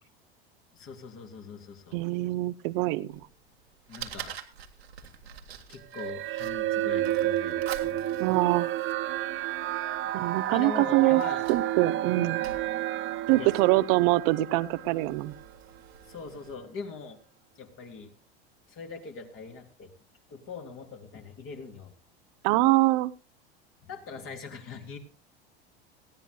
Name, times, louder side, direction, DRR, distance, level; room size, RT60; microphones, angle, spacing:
voice 1, 0.7-2.0 3.9-4.4 5.7-8.3 10.5-11.5 12.1-12.3 13.3-13.5 16.0-17.2 17.6-18.1 18.7-19.9 20.3-21.9 23.8-25.0, left 5 dB, 45° left, 3 dB, 3.5 m, -42 dB
voice 2, 1.9-3.1 8.2-8.7 10.1-11.2 11.5-12.4 13.3-15.3 22.4-23.1, right 19 dB, 55° right, 15 dB, 0.8 m, -24 dB
Fire, 3.1-16.5, right 8 dB, 85° right, 1.6 m, -47 dB
sound 1, 5.9-15.4, right 13 dB, 40° right, 1.1 m, -30 dB
19.5 x 15.0 x 2.2 m, 0.33 s
hypercardioid pair, 80°, 30 cm